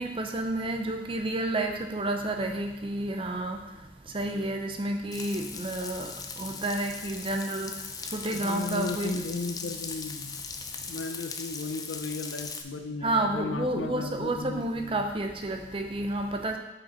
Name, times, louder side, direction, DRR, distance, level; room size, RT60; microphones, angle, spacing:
voice 1, 0.0-9.2 13.0-16.6, right 1 dB, 30° right, 4 dB, 0.6 m, -30 dB
Frying (food), 5.1-12.6, left 5 dB, 20° left, 0.4 m, -39 dB
voice 2, 8.3-10.3 10.9-15.0, left 3 dB, 85° left, 7 dB, 0.6 m, -35 dB
6.2 x 5.1 x 4.2 m, 1.1 s
head